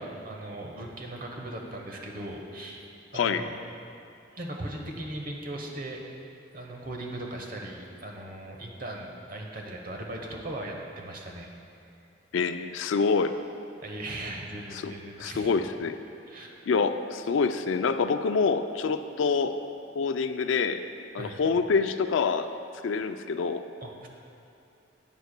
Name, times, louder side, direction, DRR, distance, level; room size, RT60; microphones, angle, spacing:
voice 1, 0.0-2.9 3.1-3.5 4.3-6.0 6.5-11.5 13.8-15.5 16.3-16.5 21.2-21.4 23.8-24.1, right 1 dB, 50° right, 1 dB, 1.0 m, -38 dB
voice 2, 3.1-3.4 12.3-13.3 14.7-14.9 15.2-16.0 16.7-19.6 19.9-20.8 21.1-22.5 22.8-23.6, left 5 dB, 80° left, 10 dB, 0.4 m, -26 dB
11.5 x 9.1 x 2.2 m, 2.7 s
head